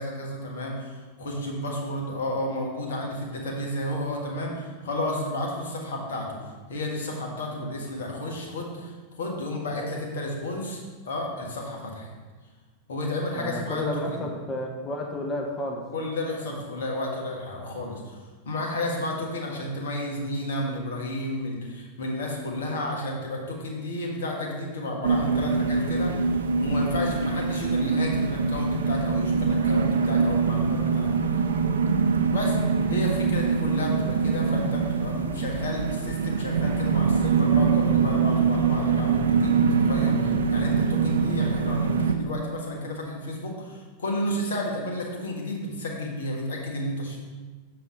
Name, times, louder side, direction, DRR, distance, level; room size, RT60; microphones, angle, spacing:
voice 1, 0.0-10.8 11.0-12.1 12.9-14.3 15.9-31.1 32.3-32.6 32.9-47.2, left 1 dB, 65° left, -1 dB, 1.6 m, -32 dB
voice 2, 13.3-15.8, left 2 dB, 20° left, 0 dB, 1.1 m, -31 dB
sound 1, 25.0-42.1, right 5 dB, 65° right, 0.5 m, -24 dB
7.2 x 6.6 x 3.9 m, 1.4 s
figure-of-eight pair, 90°, 0 cm